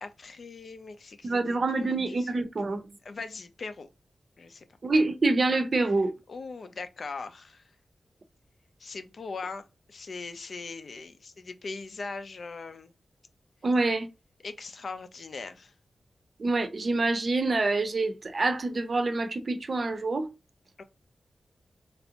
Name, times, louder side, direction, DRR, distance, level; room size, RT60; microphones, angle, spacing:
voice 1, 0.0-2.4 3.0-3.9 4.4-4.6 6.3-7.7 8.8-12.9 14.4-15.7 20.8-20.9, left 4 dB, 60° left, 0.5 m, -40 dB
voice 2, 1.2-2.8 4.8-6.1 13.6-14.1 16.4-20.3, right 3 dB, 50° right, 0.5 m, -26 dB
3.2 x 2.5 x 2.8 m
wide cardioid pair, 100°, 0 cm